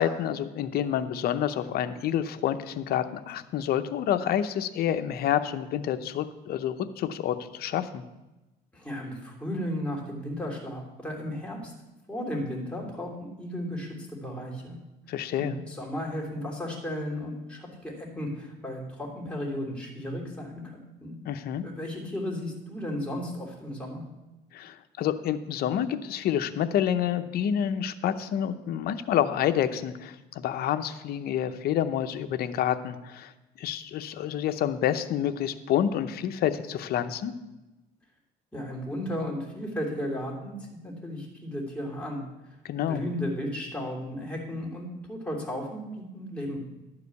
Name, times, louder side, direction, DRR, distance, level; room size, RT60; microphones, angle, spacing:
voice 1, 0.0-8.0 15.1-15.6 21.3-21.6 24.5-33.3 33.6-37.3 42.6-43.0, left 10 dB, 65° left, 9 dB, 0.7 m, -28 dB
voice 2, 8.7-11.7 12.1-14.8 15.3-21.1 21.6-24.0 38.5-40.5 40.8-42.2 42.5-42.6 42.8-46.6, equal, 5° left, -2 dB, 3.0 m, -34 dB
11.5 x 5.0 x 8.2 m, 1.0 s
cardioid pair, 110°, 17 cm